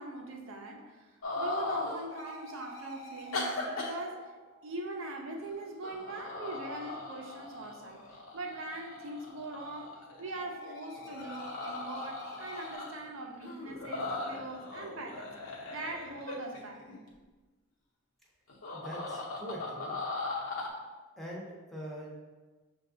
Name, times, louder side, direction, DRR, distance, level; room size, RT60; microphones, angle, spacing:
voice 1, 0.0-4.3 4.6-8.0 8.3-15.3 15.7-16.8, right 2 dB, 75° right, 2 dB, 0.6 m, -42 dB
sound 1, 1.2-2.1 3.3-3.9 5.4-5.5 5.8-10.4 10.9-13.1 13.4-17.0 18.5-20.7, left 3 dB, 80° left, 0.9 m, -39 dB
sound 2, 2.1-5.4 8.9-12.8, left 1 dB, 55° left, 0.6 m, -49 dB
voice 2, 18.7-20.0 21.2-22.2, equal, ahead, -4 dB, 0.6 m, -43 dB
6.4 x 2.3 x 2.7 m, 1.3 s
head